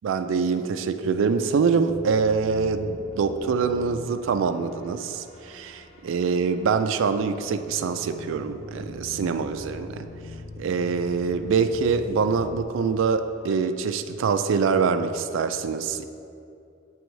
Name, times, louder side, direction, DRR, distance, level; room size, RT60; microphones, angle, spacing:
voice 1, 0.0-10.1 10.6-16.0, right 5 dB, 70° right, 10 dB, 0.3 m, -24 dB
sound 1, 1.9-12.7, left 3 dB, 30° left, 0.5 m, -42 dB
7.6 x 3.0 x 4.6 m, 2.6 s
head